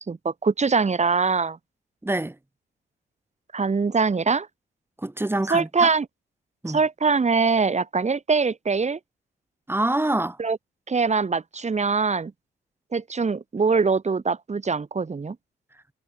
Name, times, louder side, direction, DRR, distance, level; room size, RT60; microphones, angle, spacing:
voice 1, 0.0-1.6 3.5-4.5 5.5-6.1 6.6-9.0 10.4-10.6 10.9-12.3 12.9-15.4, right 4 dB, 35° right, 5.3 m, -23 dB
voice 2, 2.0-2.4 5.0-5.9 6.6-6.8 9.7-10.4, right 1 dB, 10° right, 2.3 m, -25 dB
cardioid pair, 70°, 19 cm